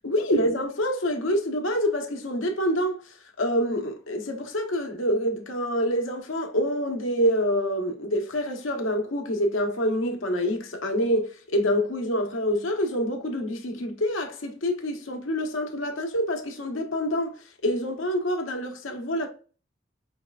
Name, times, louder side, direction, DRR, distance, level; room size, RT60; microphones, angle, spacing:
voice 1, 0.0-17.4 17.6-19.3, equal, 85° left, 1.0 m, -26 dB
5.1 x 3.2 x 2.3 m
head